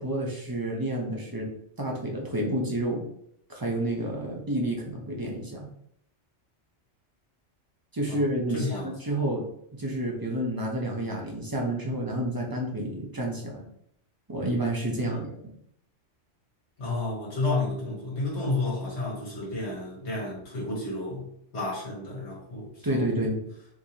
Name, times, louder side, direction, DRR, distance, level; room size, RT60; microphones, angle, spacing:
voice 1, 0.0-1.5 1.8-3.1 3.5-5.7 7.9-9.4 9.8-13.7 14.3-15.5 22.8-23.4, right 1 dB, 20° right, -1 dB, 0.8 m, -29 dB
voice 2, 8.5-8.9 15.0-15.3 16.8-21.3 21.5-23.3, left 2 dB, 65° left, -5 dB, 2.0 m, -31 dB
4.7 x 3.3 x 2.9 m, 0.70 s
omnidirectional pair, 1.2 m